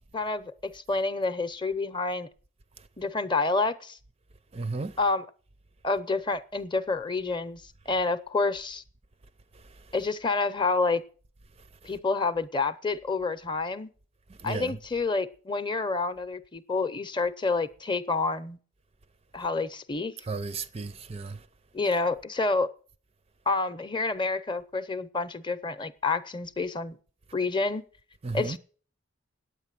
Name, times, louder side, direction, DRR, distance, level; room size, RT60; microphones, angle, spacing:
voice 1, 0.1-2.3 3.0-4.0 5.0-5.3 5.8-8.8 9.9-11.0 11.8-13.9 14.4-18.6 19.3-20.1 21.7-22.7 23.5-27.0 27.3-27.8 28.3-28.6, left 3 dB, 20° left, 0.7 m, -28 dB
voice 2, 4.5-4.9 14.4-14.7 20.3-21.4 28.2-28.6, right 3 dB, 30° right, 0.4 m, -33 dB
9.5 x 9.0 x 7.5 m
head